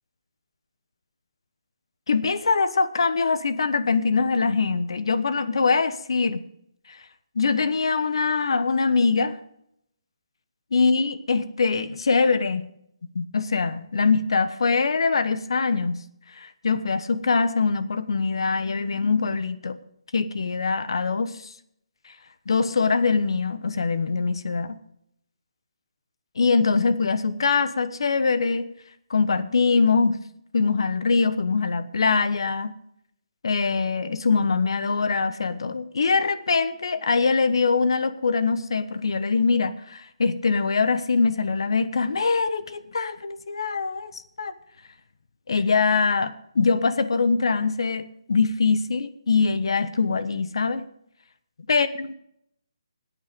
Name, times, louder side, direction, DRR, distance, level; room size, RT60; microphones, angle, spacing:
voice 1, 2.1-6.4 7.3-9.4 10.7-12.7 13.1-16.0 16.3-19.8 20.1-21.3 22.5-24.8 26.4-28.7 29.1-30.2 30.5-32.7 33.4-44.5 45.5-50.8 51.7-52.1, left 4 dB, 60° left, 13 dB, 1.0 m, -23 dB
16.0 x 8.8 x 5.2 m, 0.74 s
hypercardioid pair, 175°, 3 cm